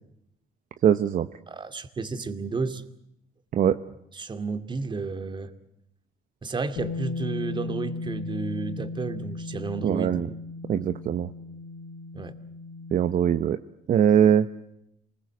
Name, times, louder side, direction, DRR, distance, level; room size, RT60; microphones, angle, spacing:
voice 1, 0.8-1.3 3.5-3.8 9.8-10.3 10.7-11.3 12.9-13.6 13.9-14.5, right 9 dB, 50° right, 9 dB, 1.1 m, -21 dB
voice 2, 1.5-2.8 4.1-5.5 6.4-10.2 12.1-12.3, right 4 dB, 25° right, 9 dB, 2.5 m, -32 dB
Bass guitar, 6.8-13.0, left 3 dB, 75° left, 2.2 m, -36 dB
28.0 x 21.0 x 7.9 m, 0.80 s
cardioid pair, 110°, 17 cm